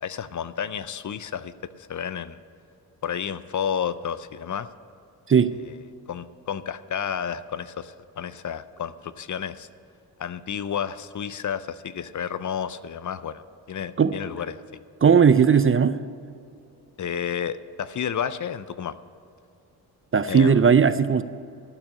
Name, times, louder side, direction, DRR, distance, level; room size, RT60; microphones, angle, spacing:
voice 1, 0.0-2.4 3.0-4.7 6.1-9.7 10.2-14.6 17.0-18.9 20.3-20.7, left 8 dB, 45° left, 0.6 m, -31 dB
voice 2, 15.0-16.0 20.1-21.2, right 6 dB, 30° right, 0.5 m, -17 dB
12.5 x 6.0 x 9.5 m
cardioid pair, 55°, 41 cm